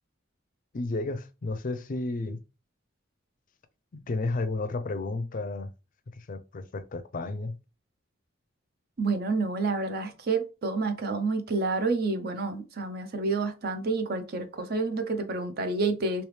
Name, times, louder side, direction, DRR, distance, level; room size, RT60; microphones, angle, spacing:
voice 1, 0.7-2.4 3.9-5.7 6.2-7.6, left 2 dB, 45° left, 0.5 m, -32 dB
voice 2, 9.0-16.2, right 3 dB, 50° right, 0.6 m, -29 dB
3.3 x 2.9 x 3.2 m
head